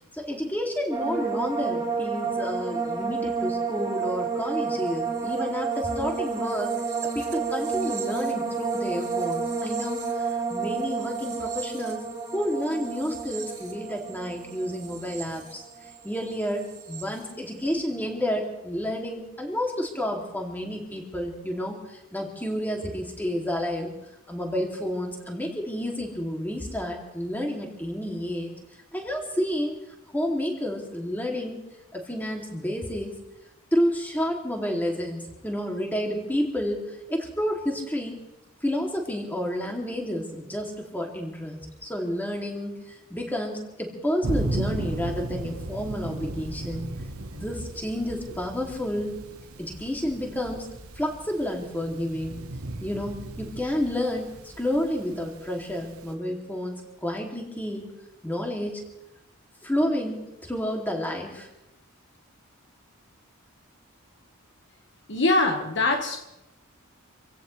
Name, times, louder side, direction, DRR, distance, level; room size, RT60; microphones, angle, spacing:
voice 1, 0.1-6.7 7.1-12.0 12.3-23.9 24.3-28.5 28.9-29.7 30.1-31.6 31.9-33.1 33.7-38.2 38.6-46.9 47.3-49.1 49.6-50.6 51.0-52.4 52.8-57.9 58.2-58.8 59.6-61.5, equal, 10° left, 0 dB, 2.6 m, -30 dB
sound 1, 0.9-16.1 16.4-17.0, right 5 dB, 20° right, 2.7 m, -30 dB
Thunder, 44.2-56.1, right 2 dB, 75° right, 1.2 m, -36 dB
voice 2, 65.1-66.2, left 2 dB, 55° left, 4 dB, 1.4 m, -23 dB
26.5 x 16.5 x 3.3 m, 0.91 s
head